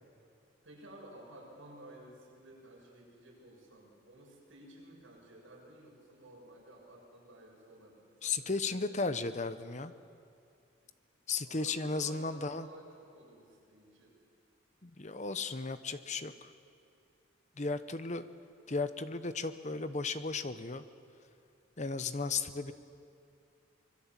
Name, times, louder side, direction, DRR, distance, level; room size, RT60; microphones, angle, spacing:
voice 1, 0.6-8.8 11.4-14.2 22.6-22.7, right 1 dB, 70° right, -3 dB, 7.3 m, -54 dB
voice 2, 8.2-9.9 11.3-12.7 14.8-16.5 17.6-18.3 18.7-20.8 21.8-22.7, left 4 dB, 35° left, 11 dB, 0.8 m, -35 dB
25.0 x 22.0 x 7.4 m, 2.4 s
head